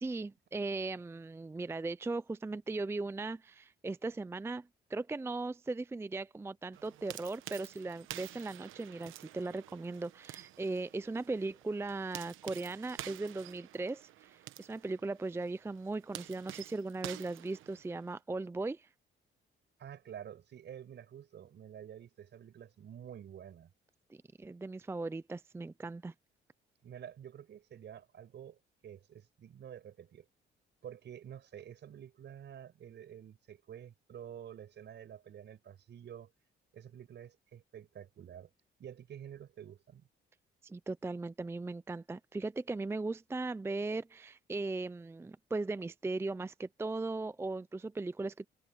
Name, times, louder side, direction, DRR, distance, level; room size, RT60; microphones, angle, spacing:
voice 1, 0.0-18.9 24.1-26.1 40.6-48.5, right 3 dB, 10° right, 0.4 m, -38 dB
sound 1, 6.7-18.2, right 14 dB, 85° right, 1.1 m, -49 dB
voice 2, 19.8-23.7 26.8-30.3 30.8-36.3 36.7-38.5 38.8-40.1, right 9 dB, 65° right, 5.3 m, -49 dB
cardioid pair, 90°, 20 cm